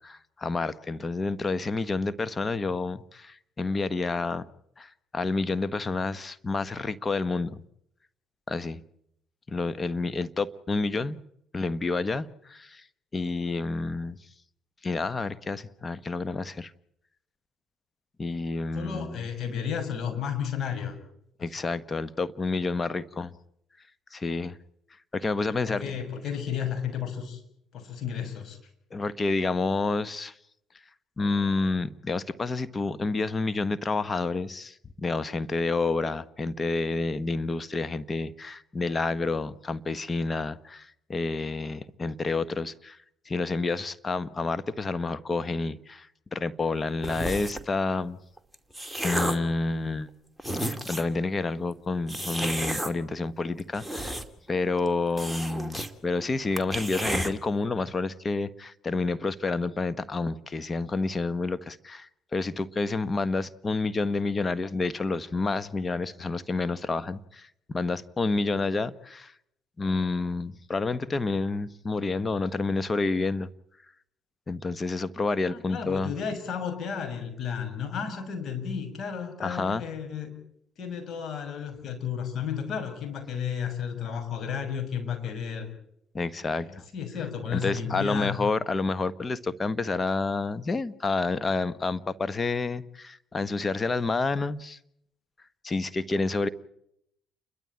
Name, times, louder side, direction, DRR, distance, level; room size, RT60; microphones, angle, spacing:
voice 1, 0.0-4.5 4.8-7.6 8.5-8.8 9.5-11.2 11.5-12.8 13.1-14.2 14.8-16.7 18.2-19.2 21.4-23.3 24.1-24.6 25.1-25.9 28.9-30.3 31.2-43.0 43.3-48.2 49.0-50.1 50.5-54.2 54.5-69.3 69.8-73.5 74.5-76.1 79.4-79.8 86.1-86.8 87.5-94.8 95.6-96.5, left 3 dB, 30° left, 1.2 m, -29 dB
voice 2, 18.7-21.0 21.5-21.6 25.5-27.4 27.7-28.6 75.5-80.3 80.8-85.7 86.4-88.4, left 7 dB, 55° left, 6.6 m, -33 dB
sound 1, 47.0-47.7 48.4-49.5 50.1-50.2 50.4-51.2 52.1-52.9 53.6-54.5 54.8-54.9 55.2-55.9 56.2-56.3 56.6-57.3, right 1 dB, ahead, 2.4 m, -31 dB
29.5 x 12.5 x 8.8 m
supercardioid pair, 65°, 0 cm